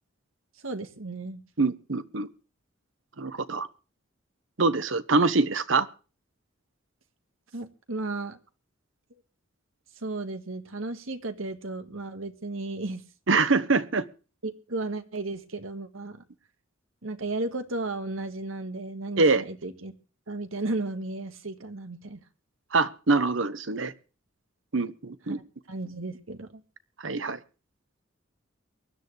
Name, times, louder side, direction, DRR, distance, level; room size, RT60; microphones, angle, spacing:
voice 1, 0.6-1.4 7.5-8.4 10.0-13.0 14.4-16.2 17.0-19.9 20.3-22.2 25.3-25.4 25.7-26.6, right 2 dB, 90° right, 1.7 m, -34 dB
voice 2, 1.6-2.3 3.2-3.7 4.6-5.9 13.3-14.0 19.2-19.4 22.7-23.9 24.7-25.4 27.0-27.4, right 3 dB, 65° right, 1.1 m, -24 dB
23.5 x 10.5 x 3.3 m
head